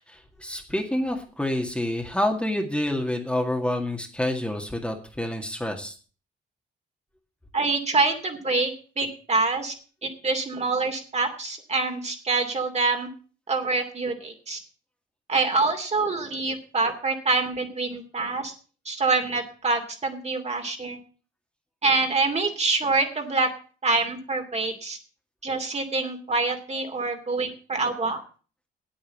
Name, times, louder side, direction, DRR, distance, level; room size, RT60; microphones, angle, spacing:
voice 1, 0.1-5.9, left 1 dB, 5° left, 2 dB, 2.0 m, -28 dB
voice 2, 7.5-9.7 10.0-13.1 13.5-14.6 15.3-18.5 18.8-21.0 21.8-23.5 23.8-25.0 25.4-28.2, right 3 dB, 35° right, 4 dB, 2.6 m, -26 dB
8.8 x 8.5 x 7.5 m, 0.39 s
cardioid pair, 90°, 20 cm